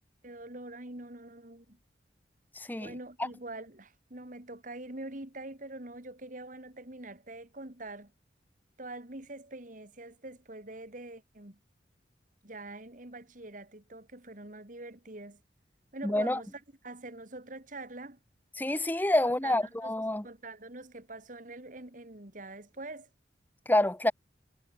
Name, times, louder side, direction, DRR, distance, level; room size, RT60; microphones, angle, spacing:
voice 1, 0.2-1.8 2.8-8.1 8.8-11.6 12.4-15.4 15.9-16.5 16.8-18.2 19.2-23.1, right 2 dB, 45° right, 2.6 m, -44 dB
voice 2, 2.6-2.9 16.0-16.4 18.6-20.2 23.7-24.1, left 1 dB, 10° left, 0.8 m, -27 dB
head